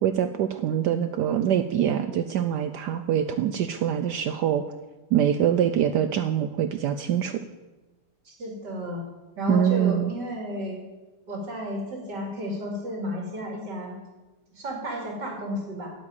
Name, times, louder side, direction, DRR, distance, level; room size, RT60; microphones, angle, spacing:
voice 1, 0.0-4.6 5.1-7.4 9.5-10.1, right 9 dB, 85° right, 9 dB, 0.9 m, -24 dB
voice 2, 8.2-9.0 9.4-10.8 11.3-13.9 14.6-15.9, equal, 50° right, 0 dB, 3.3 m, -32 dB
9.4 x 7.9 x 8.9 m, 1.2 s
omnidirectional pair, 2.4 m